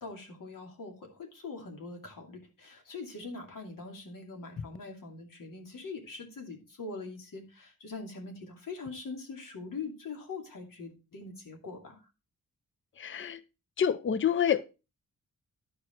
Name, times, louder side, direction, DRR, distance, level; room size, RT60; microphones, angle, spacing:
voice 1, 0.0-12.0, left 3 dB, 80° left, 2.6 m, -43 dB
voice 2, 13.0-13.4 13.8-14.6, left 8 dB, 40° left, 0.6 m, -27 dB
12.0 x 4.8 x 4.5 m
wide cardioid pair, 135°, 33 cm